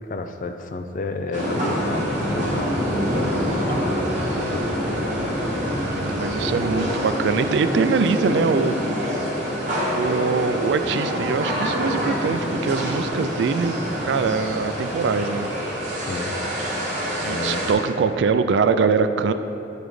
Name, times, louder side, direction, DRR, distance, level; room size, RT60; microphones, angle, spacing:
voice 1, 0.1-4.1 5.9-6.0 16.1-16.3 17.2-17.6, left 3 dB, 45° left, 7 dB, 0.3 m, -32 dB
sound 1, 1.3-17.7, equal, 40° right, 1.3 m, -26 dB
sound 2, 1.7-6.9, equal, 5° right, 0.7 m, -34 dB
voice 2, 6.0-8.8 9.9-13.7 14.0-15.5 17.2-19.3, right 5 dB, 75° right, 11 dB, 0.3 m, -23 dB
8.9 x 5.2 x 3.2 m, 2.9 s
head